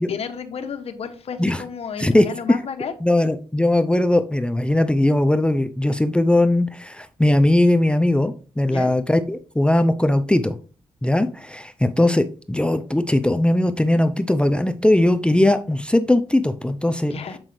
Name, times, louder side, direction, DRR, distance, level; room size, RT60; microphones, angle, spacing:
voice 1, 0.0-2.9 8.7-8.9 17.0-17.4, left 6 dB, 65° left, 7 dB, 0.9 m, -32 dB
voice 2, 3.0-10.6 11.0-17.1, left 1 dB, 10° left, 10 dB, 0.5 m, -19 dB
7.5 x 5.0 x 3.2 m, 0.36 s
cardioid pair, 75°, 11 cm